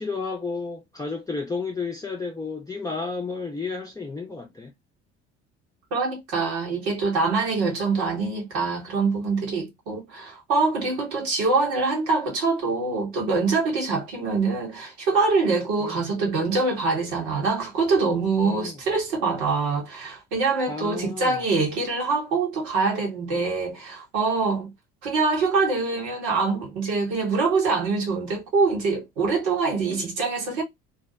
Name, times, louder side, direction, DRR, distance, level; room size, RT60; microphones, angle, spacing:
voice 1, 0.0-4.7 15.8-16.1 18.4-18.8 20.7-21.4, left 4 dB, 10° left, 0.6 m, -32 dB
voice 2, 5.9-24.7 25.0-30.6, right 4 dB, 75° right, 1.2 m, -24 dB
2.6 x 2.0 x 2.7 m
hypercardioid pair, 55°, 33 cm